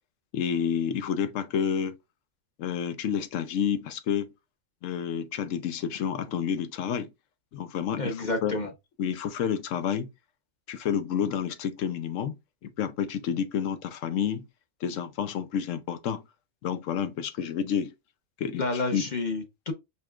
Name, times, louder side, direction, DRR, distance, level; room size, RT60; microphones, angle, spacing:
voice 1, 0.3-1.9 2.6-4.3 4.8-7.1 7.5-8.6 9.0-10.1 10.7-12.4 12.6-14.5 14.8-16.2 16.6-17.9 18.4-19.0, left 8 dB, 75° left, 1.0 m, -29 dB
voice 2, 7.9-8.7 18.6-19.7, left 2 dB, 40° left, 0.9 m, -30 dB
5.6 x 3.5 x 2.3 m
omnidirectional pair, 1.3 m